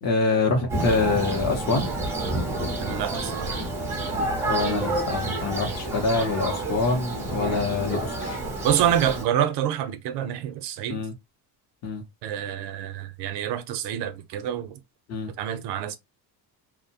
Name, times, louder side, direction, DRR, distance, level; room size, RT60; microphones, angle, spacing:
voice 1, 0.0-1.9 4.5-8.4 10.9-11.1 11.8-12.0 15.1-15.3, left 3 dB, 40° left, 0.6 m, -25 dB
Thunder, 0.7-9.2, right 2 dB, 5° right, 0.4 m, -29 dB
voice 2, 2.8-3.6 8.6-11.0 12.2-14.8 15.3-16.0, right 10 dB, 70° right, 0.6 m, -27 dB
2.7 x 2.1 x 2.7 m
cardioid pair, 180°, 42 cm